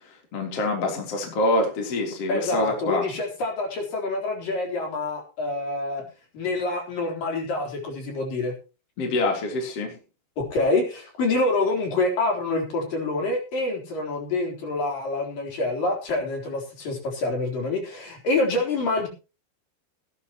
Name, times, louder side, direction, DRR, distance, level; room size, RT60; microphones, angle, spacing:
voice 1, 0.3-3.0 9.0-10.0, left 2 dB, 35° left, 2 dB, 4.1 m, -25 dB
voice 2, 2.3-6.0 6.3-8.5 10.4-19.1, left 2 dB, 55° left, 2 dB, 5.2 m, -26 dB
19.5 x 12.0 x 3.0 m, 0.32 s
omnidirectional pair, 5.0 m